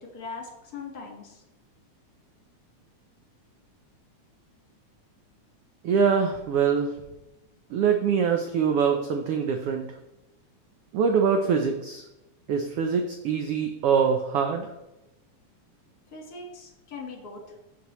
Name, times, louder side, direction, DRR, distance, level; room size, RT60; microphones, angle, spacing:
voice 1, 0.0-1.4 16.1-17.4, left 4 dB, 40° left, 1 dB, 1.6 m, -40 dB
voice 2, 5.8-6.9 7.7-9.9 10.9-12.0 12.5-14.7, right 6 dB, 90° right, 4 dB, 1.2 m, -24 dB
13.5 x 4.9 x 3.0 m, 0.96 s
omnidirectional pair, 3.5 m